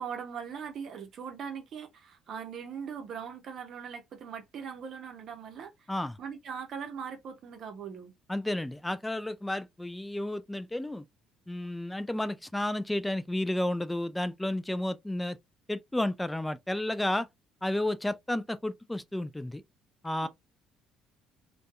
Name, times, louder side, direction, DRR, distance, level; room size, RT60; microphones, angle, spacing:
voice 1, 0.0-5.9 6.2-8.1 20.2-20.3, right 7 dB, 50° right, 0.7 m, -40 dB
voice 2, 8.3-11.0 11.5-15.4 15.7-17.3 17.6-19.6 20.0-20.3, left 1 dB, 10° left, 0.3 m, -32 dB
2.5 x 2.3 x 2.3 m
figure-of-eight pair, 50°, 0 cm